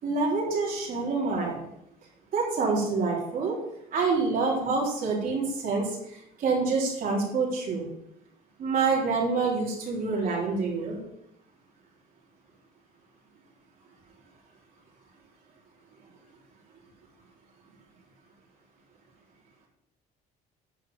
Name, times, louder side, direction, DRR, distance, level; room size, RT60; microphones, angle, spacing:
voice 1, 0.0-1.6 2.3-3.5 3.9-7.9 8.6-11.0, right 4 dB, 55° right, -4 dB, 3.9 m, -27 dB
10.0 x 4.7 x 6.9 m, 0.75 s
cardioid pair, 110°, 17 cm